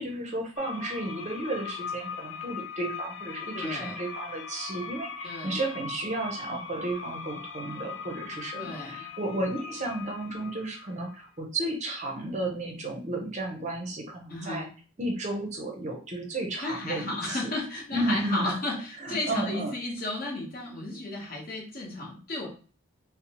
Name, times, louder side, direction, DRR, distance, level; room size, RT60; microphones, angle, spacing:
voice 1, 0.0-14.6 15.0-17.5 17.9-18.6 19.0-19.8, right 1 dB, 35° right, 1 dB, 0.5 m, -33 dB
sound 1, 0.6-11.2, left 5 dB, 65° left, 0.4 m, -40 dB
voice 2, 3.5-4.0 5.2-5.6 8.5-9.1 14.3-14.7 16.6-22.5, left 2 dB, 45° left, -2 dB, 1.0 m, -33 dB
2.6 x 2.0 x 2.9 m, 0.39 s
head